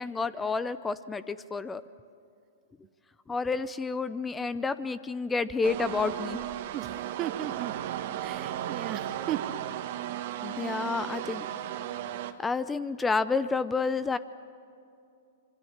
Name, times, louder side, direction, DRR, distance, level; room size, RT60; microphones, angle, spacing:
voice 1, 0.0-1.8 3.3-6.4 10.4-11.5 12.4-14.2, left 4 dB, 10° left, 16 dB, 0.6 m, -30 dB
sound 1, 5.6-12.3, right 11 dB, 55° right, 1.4 m, -35 dB
voice 2, 6.7-7.8 8.2-9.5, right 12 dB, 35° right, 15 dB, 0.8 m, -36 dB
26.0 x 24.0 x 7.4 m, 2.5 s
hypercardioid pair, 120°, 0 cm